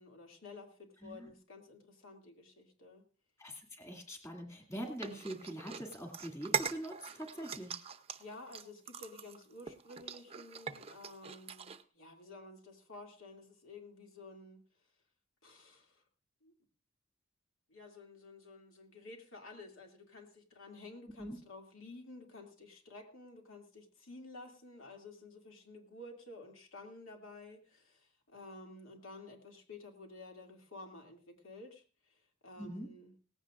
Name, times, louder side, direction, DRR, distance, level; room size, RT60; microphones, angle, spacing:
voice 1, 0.0-3.0 8.2-14.6 15.4-16.0 16.4-16.5 17.7-33.1, left 2 dB, 70° left, 2 dB, 2.5 m, -52 dB
voice 2, 1.0-1.3 3.4-7.8 21.2-21.4 32.6-32.9, right 1 dB, 15° left, 3 dB, 2.3 m, -43 dB
sound 1, 5.0-11.8, right 6 dB, 30° right, 0.7 m, -41 dB
18.0 x 15.5 x 2.5 m, 0.37 s
head